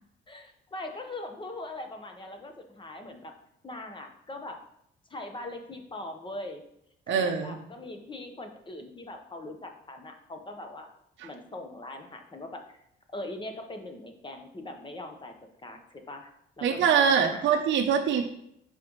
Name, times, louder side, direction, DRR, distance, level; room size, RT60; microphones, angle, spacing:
voice 1, 0.3-3.3 3.6-4.6 5.1-6.6 7.1-10.9 11.2-12.6 13.1-15.3 15.6-17.6, left 2 dB, 25° left, 4 dB, 1.0 m, -41 dB
voice 2, 7.1-7.6 16.6-18.3, right 7 dB, 70° right, 3 dB, 0.6 m, -24 dB
5.8 x 5.3 x 3.1 m, 0.76 s
cardioid pair, 90°, 20 cm